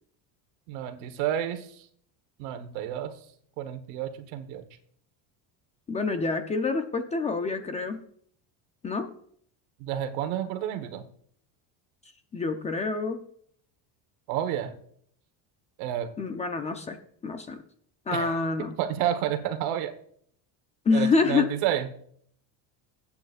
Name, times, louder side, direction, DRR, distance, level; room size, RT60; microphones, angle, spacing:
voice 1, 0.7-1.9 2.4-3.1 3.6-4.6 9.8-11.1 14.3-14.8 15.8-16.1 18.1-18.4 18.8-19.9 20.9-21.9, right 10 dB, 80° right, 9 dB, 1.3 m, -30 dB
voice 2, 5.9-8.0 8.8-9.1 12.3-13.2 16.2-17.0 17.2-17.6 18.1-18.7 20.9-21.5, left 4 dB, 15° left, 7 dB, 0.4 m, -27 dB
20.5 x 8.7 x 2.5 m, 0.64 s
cardioid pair, 170°, 44 cm